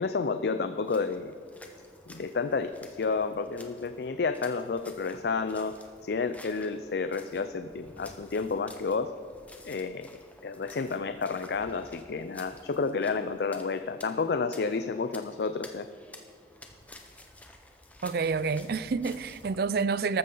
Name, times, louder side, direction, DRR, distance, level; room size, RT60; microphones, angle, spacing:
voice 1, 0.0-1.3 2.1-2.7 3.0-5.8 6.0-9.1 9.6-10.1 10.4-15.9, left 4 dB, 60° left, 0.4 m, -30 dB
sound 1, 0.7-19.6, left 1 dB, 10° left, 1.0 m, -52 dB
voice 2, 18.0-20.2, right 5 dB, 60° right, 0.4 m, -28 dB
14.5 x 13.0 x 3.9 m
head